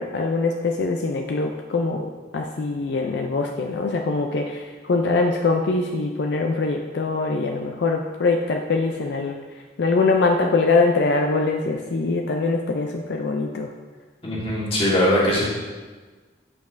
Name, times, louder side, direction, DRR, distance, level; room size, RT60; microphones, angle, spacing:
voice 1, 0.0-9.4 9.8-13.7, left 3 dB, 70° left, 3 dB, 0.4 m, -23 dB
voice 2, 14.2-15.4, equal, 30° left, -5 dB, 1.5 m, -20 dB
8.3 x 5.1 x 2.6 m, 1.4 s
head